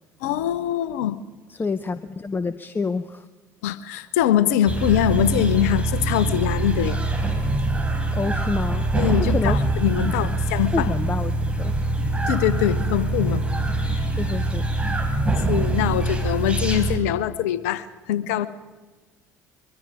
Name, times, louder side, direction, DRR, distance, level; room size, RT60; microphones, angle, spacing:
voice 1, 0.2-1.2 3.6-7.0 9.0-10.9 12.3-13.4 13.9-14.1 15.5-18.5, left 11 dB, 70° left, 16 dB, 1.0 m, -23 dB
voice 2, 1.5-3.3 8.1-8.9 9.3-9.6 10.0-10.4 10.7-11.8 14.1-14.6, left 4 dB, 25° left, 13 dB, 0.9 m, -28 dB
sound 1, 4.7-17.0, right 2 dB, 15° right, 4.5 m, -24 dB
24.5 x 23.0 x 5.2 m, 1.3 s
figure-of-eight pair, 60°, 9 cm